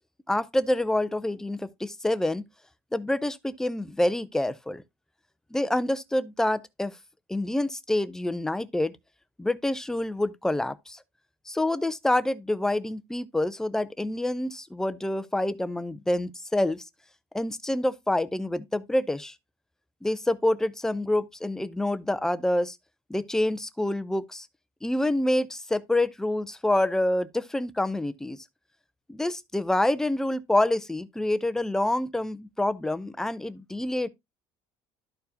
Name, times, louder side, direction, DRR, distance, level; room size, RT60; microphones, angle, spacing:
voice 1, 0.3-2.4 2.9-4.8 5.5-6.9 7.3-8.9 9.4-11.0 11.5-16.8 17.3-19.4 20.0-22.8 23.1-24.5 24.8-28.4 29.1-34.1, left 1 dB, 5° left, 0.5 m, -27 dB
12.5 x 4.6 x 2.7 m
cardioid pair, 140°, 10 cm